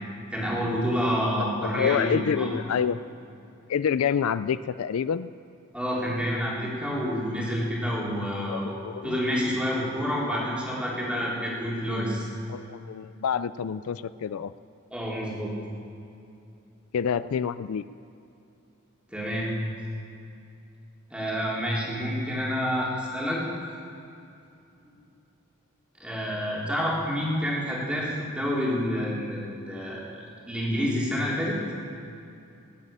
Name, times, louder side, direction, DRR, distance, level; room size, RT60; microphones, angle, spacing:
voice 1, 0.3-2.5 5.7-8.8 9.0-12.3 14.9-15.5 19.1-19.5 21.1-23.4 26.0-31.6, equal, 5° right, -5 dB, 3.4 m, -28 dB
voice 2, 1.2-3.0 3.7-5.3 8.5-9.2 12.5-14.5 16.9-17.8, left 7 dB, 80° left, 15 dB, 0.4 m, -28 dB
20.0 x 8.2 x 8.9 m, 2.7 s
head